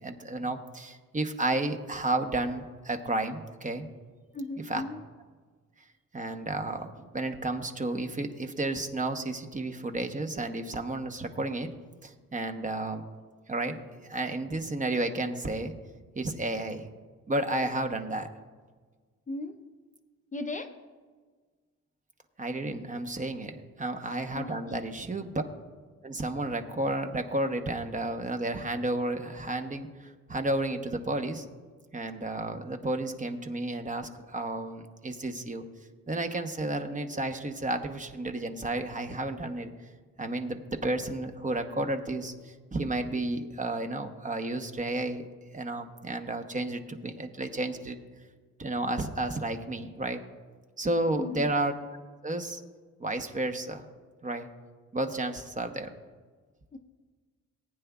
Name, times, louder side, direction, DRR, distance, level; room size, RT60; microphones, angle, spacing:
voice 1, 0.0-3.9 4.6-4.8 6.1-11.7 12.0-13.0 13.5-15.7 16.1-16.9 17.3-18.3 22.4-25.3 26.0-31.4 31.9-35.6 36.1-39.7 40.2-45.3 45.5-48.0 48.6-50.2 50.8-51.7 52.2-52.6 53.0-53.8 54.2-54.5 54.9-55.9, right 2 dB, 25° right, 6 dB, 1.0 m, -32 dB
voice 2, 4.3-5.0 19.3-19.6 20.3-20.7 24.3-24.8 51.1-51.5 56.7-56.8, left 2 dB, 25° left, 6 dB, 0.7 m, -36 dB
19.0 x 9.2 x 2.3 m, 1.5 s
cardioid pair, 90°, 30 cm